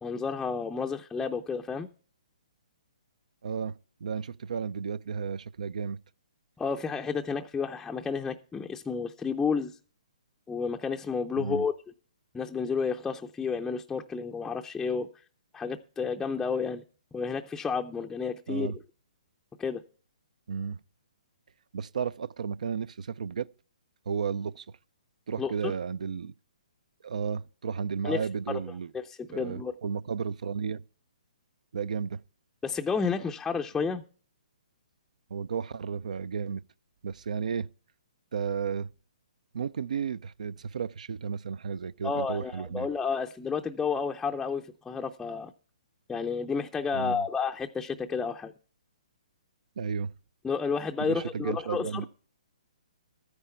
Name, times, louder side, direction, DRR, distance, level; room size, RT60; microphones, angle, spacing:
voice 1, 0.0-1.9 6.6-9.8 10.5-11.7 12.3-15.1 15.5-16.8 17.1-18.7 19.6-19.8 25.4-25.7 28.0-28.6 28.9-29.7 32.6-34.0 42.0-45.5 46.1-48.5 50.4-52.1, left 5 dB, 10° left, 0.5 m, -31 dB
voice 2, 3.4-3.7 4.0-6.0 11.4-11.6 18.5-18.8 20.5-20.8 21.7-23.5 24.1-24.7 25.3-26.3 27.0-28.9 29.3-30.8 31.7-32.2 35.3-36.6 37.0-37.7 38.3-38.9 39.5-42.9 46.9-47.2 49.8-50.1 51.0-52.1, right 6 dB, 70° right, 0.5 m, -33 dB
13.5 x 9.8 x 4.4 m
hypercardioid pair, 135°, 4 cm